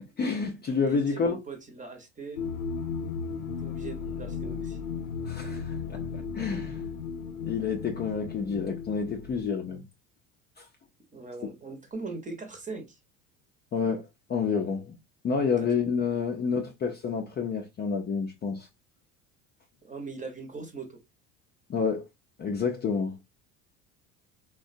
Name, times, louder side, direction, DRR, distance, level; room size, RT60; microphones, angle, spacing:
voice 1, 0.2-1.4 5.2-6.0 6.3-6.8 7.4-9.9 10.6-10.7 13.7-14.0 14.3-15.0 15.2-18.7 21.7-22.0 22.4-23.2, left 5 dB, 25° left, 0.5 m, -29 dB
voice 2, 0.7-2.4 3.6-4.8 11.1-13.0 15.6-15.7 19.8-21.0, right 3 dB, 20° right, 0.9 m, -40 dB
sound 1, 2.4-9.5, left 6 dB, 90° left, 0.5 m, -35 dB
3.4 x 2.2 x 2.5 m
hypercardioid pair, 70°, 40 cm